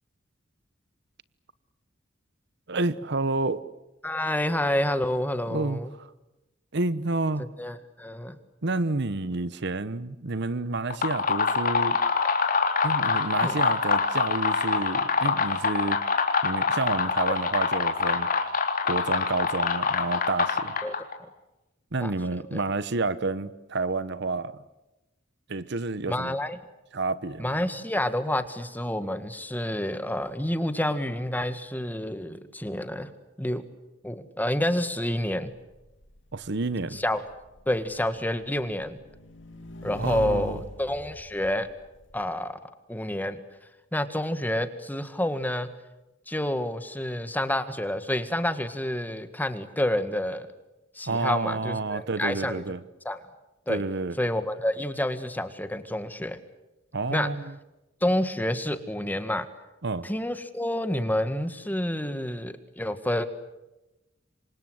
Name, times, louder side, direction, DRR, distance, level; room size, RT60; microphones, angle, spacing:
voice 1, 2.7-3.6 5.5-6.1 6.7-7.5 8.6-12.0 12.8-16.0 16.4-18.3 18.8-20.7 21.9-24.6 25.5-26.3 26.9-27.6 36.3-37.0 40.0-40.6 51.1-52.8 53.7-54.2 56.9-57.5 59.8-60.1, right 3 dB, 60° right, 16 dB, 1.0 m, -29 dB
voice 2, 4.0-5.9 7.4-8.4 13.4-13.6 17.3-17.4 20.8-21.0 21.2-21.3 22.0-22.1 22.5-22.6 26.1-26.6 27.4-33.1 33.4-33.6 34.0-35.5 36.9-37.2 37.7-39.0 39.8-41.7 42.1-42.6 42.9-43.4 43.9-45.7 46.3-50.5 51.0-52.6 53.1-53.2 53.7-53.8 54.2-56.4 57.1-57.3 58.0-59.5 60.0-63.3, left 1 dB, 10° left, 10 dB, 1.8 m, -28 dB
sound 1, 10.8-21.1, left 5 dB, 45° left, 3.6 m, -25 dB
Motorcycle / Engine, 35.2-42.2, left 1 dB, 70° left, 2.9 m, -42 dB
28.0 x 25.0 x 8.0 m, 0.98 s
head